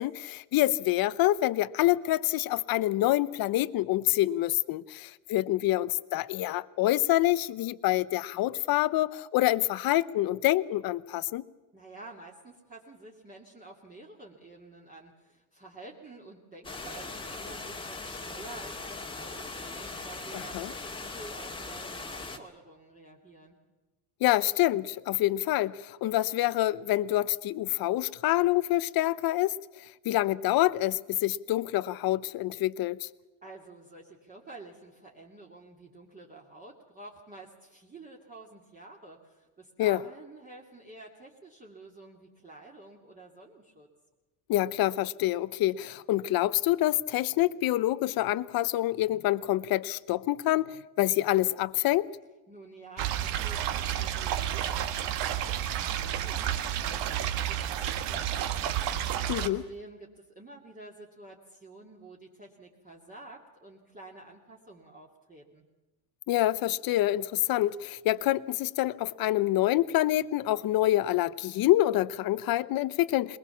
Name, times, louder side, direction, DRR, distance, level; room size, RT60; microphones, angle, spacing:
voice 1, 0.0-11.4 20.3-20.7 24.2-29.5 30.0-33.1 39.8-40.0 44.5-50.7 51.0-52.1 59.3-59.6 66.3-73.4, left 15 dB, 45° left, 0.9 m, -26 dB
voice 2, 11.7-23.6 33.4-43.9 52.5-65.6, right 2 dB, 15° right, 2.6 m, -49 dB
sound 1, 16.6-22.4, left 3 dB, 10° left, 1.9 m, -40 dB
sound 2, 53.0-59.5, right 11 dB, 60° right, 1.6 m, -31 dB
22.0 x 21.0 x 7.2 m
cardioid pair, 125°, 48 cm